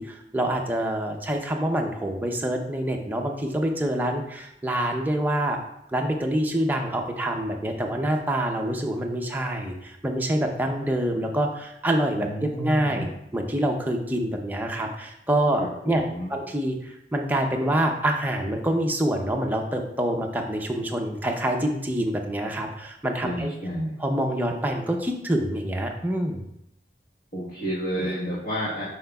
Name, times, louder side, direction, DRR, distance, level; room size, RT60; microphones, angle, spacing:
voice 1, 0.0-5.6 5.9-16.0 16.3-23.5 24.0-26.4, right 1 dB, 10° right, 2 dB, 0.6 m, -26 dB
voice 2, 12.2-13.1 15.6-16.3 23.2-24.0 27.3-28.8, equal, 55° left, -8 dB, 1.4 m, -30 dB
7.7 x 5.5 x 2.3 m, 0.80 s
head